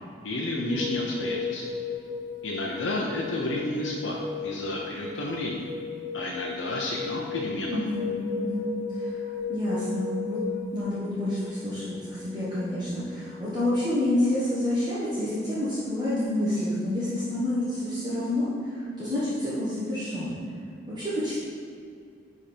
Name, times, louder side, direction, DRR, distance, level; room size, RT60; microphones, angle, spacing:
voice 1, 0.2-1.6 2.4-5.7 6.1-7.9, left 1 dB, 75° left, -3 dB, 0.8 m, -31 dB
sound 1, 0.7-16.2, left 5 dB, 55° left, 1.6 m, -36 dB
voice 2, 7.7-8.7 9.0-9.2 9.5-10.4 10.7-20.4 20.9-21.3, left 1 dB, 20° right, -11 dB, 1.2 m, -28 dB
10.0 x 3.7 x 4.4 m, 2.4 s
head